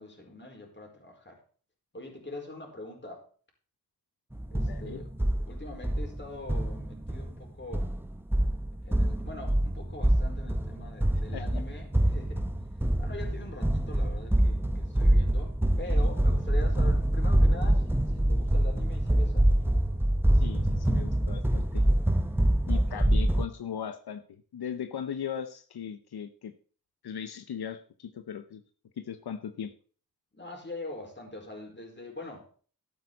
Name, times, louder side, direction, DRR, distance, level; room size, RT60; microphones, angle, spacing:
voice 1, 0.0-1.4 1.9-3.3 4.5-5.1 5.5-7.9 8.8-12.4 13.0-19.5 22.7-23.0 30.3-32.5, left 2 dB, 30° left, 1 dB, 4.6 m, -43 dB
sound 1, 4.3-23.4, right 1 dB, 5° right, 0.8 m, -25 dB
voice 2, 4.6-5.0 11.3-11.6 20.3-21.9 22.7-26.5 27.0-28.6 29.0-29.7, left 8 dB, 85° left, 9 dB, 0.9 m, -38 dB
12.5 x 8.9 x 4.0 m, 0.42 s
wide cardioid pair, 70°, 37 cm